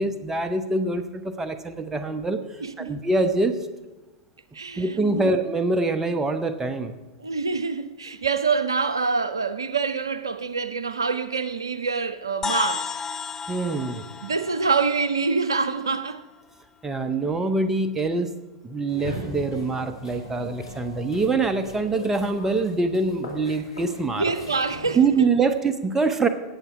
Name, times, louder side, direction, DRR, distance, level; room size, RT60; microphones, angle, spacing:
voice 1, 0.0-2.4 2.8-3.6 4.8-6.9 13.5-14.1 16.8-18.3 18.6-24.2 24.9-26.3, right 3 dB, 15° right, 1.0 m, -24 dB
voice 2, 2.6-2.9 4.5-5.3 7.2-12.9 14.2-16.2 24.2-25.0, right 4 dB, 85° right, 0.5 m, -26 dB
sound 1, 12.4-16.2, left 5 dB, 15° left, 0.7 m, -34 dB
sound 2, 18.9-24.9, left 1 dB, 85° left, 2.5 m, -40 dB
17.0 x 7.1 x 4.9 m
figure-of-eight pair, 90°, 2 cm